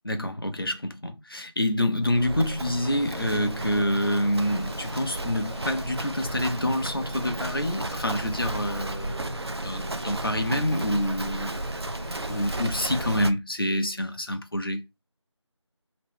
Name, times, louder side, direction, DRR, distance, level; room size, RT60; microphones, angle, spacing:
voice 1, 0.0-9.3 9.6-11.6 12.3-14.8, left 1 dB, 50° left, 0.7 m, -27 dB
Livestock farm animals working animals, 2.0-13.3, right 2 dB, 60° right, 0.5 m, -35 dB
sound 1, 2.8-13.2, equal, 35° left, 1.4 m, -38 dB
3.2 x 2.9 x 3.3 m
figure-of-eight pair, 180°, 16 cm